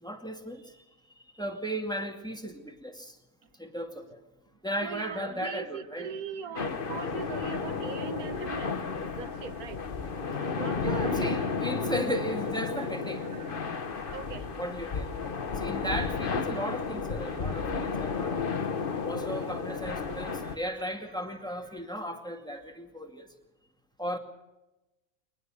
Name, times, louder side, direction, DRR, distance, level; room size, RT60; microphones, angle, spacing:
voice 1, 0.0-0.6 1.4-3.1 3.6-4.2 4.6-6.1 7.0-7.6 10.8-13.2 14.6-15.1 15.6-18.4 19.0-23.3 24.0-24.2, equal, 5° left, 4 dB, 2.3 m, -35 dB
voice 2, 4.8-8.8 9.2-9.8 10.5-11.5 14.1-14.5, right 7 dB, 85° right, 11 dB, 1.6 m, -40 dB
sound 1, 5.8-21.8, right 5 dB, 40° right, 3.1 m, -56 dB
sound 2, 6.5-20.5, left 5 dB, 40° left, 1.2 m, -32 dB
23.5 x 19.5 x 6.5 m, 1.0 s
omnidirectional pair, 1.5 m